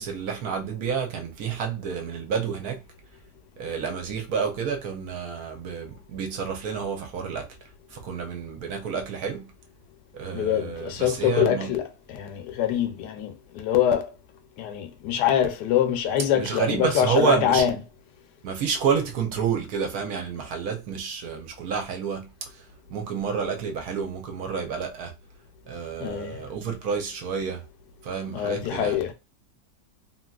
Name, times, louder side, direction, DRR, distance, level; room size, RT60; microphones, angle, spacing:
voice 1, 0.0-2.8 3.6-7.5 7.9-9.5 10.1-11.7 16.3-17.6 18.4-22.3 22.9-25.2 25.7-27.7 28.0-28.9, right 6 dB, 65° right, 1.0 m, -29 dB
voice 2, 10.3-14.1 14.6-17.8 26.0-26.4 28.3-29.1, left 10 dB, 75° left, 1.1 m, -24 dB
2.8 x 2.8 x 2.3 m
omnidirectional pair, 2.0 m